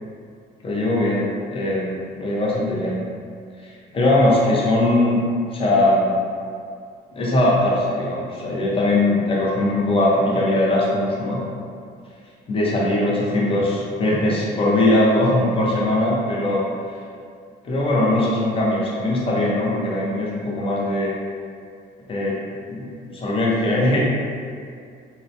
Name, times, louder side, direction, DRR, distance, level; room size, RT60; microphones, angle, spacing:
voice 1, 0.6-1.3 1.5-3.0 3.6-5.2 5.5-6.2 7.1-11.4 12.5-16.7 17.6-21.1 22.1-24.0, left 1 dB, 35° left, -5 dB, 0.6 m, -20 dB
2.8 x 2.1 x 2.6 m, 2.2 s
cardioid pair, 110°, 17 cm